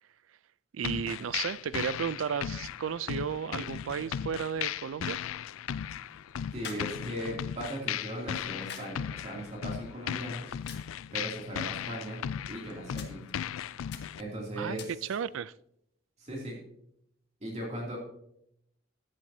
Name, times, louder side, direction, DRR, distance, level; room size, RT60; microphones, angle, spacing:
voice 1, 0.7-5.2 14.6-14.8 15.1-15.5, right 7 dB, 80° right, 0.4 m, -34 dB
sound 1, 0.8-14.2, left 9 dB, 90° left, 0.4 m, -37 dB
sound 2, 5.4-15.4, left 7 dB, 55° left, 1.7 m, -52 dB
voice 2, 6.5-10.5 11.1-13.2 14.2-14.9 16.2-16.6 17.4-18.0, right 1 dB, 35° right, 2.6 m, -38 dB
14.5 x 10.5 x 2.7 m
head